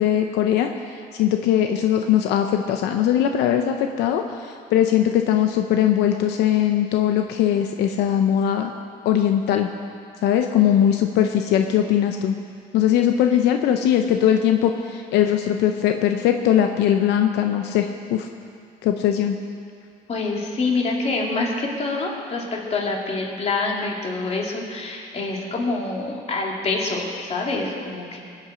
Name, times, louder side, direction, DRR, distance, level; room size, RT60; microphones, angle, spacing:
voice 1, 0.0-8.7 9.0-9.7 10.2-12.4 12.7-18.3 18.8-19.4, left 10 dB, 90° left, 5 dB, 0.7 m, -20 dB
voice 2, 20.1-28.2, left 3 dB, 40° left, -1 dB, 2.6 m, -26 dB
21.0 x 8.4 x 5.1 m, 2.3 s
cardioid pair, 110°, 17 cm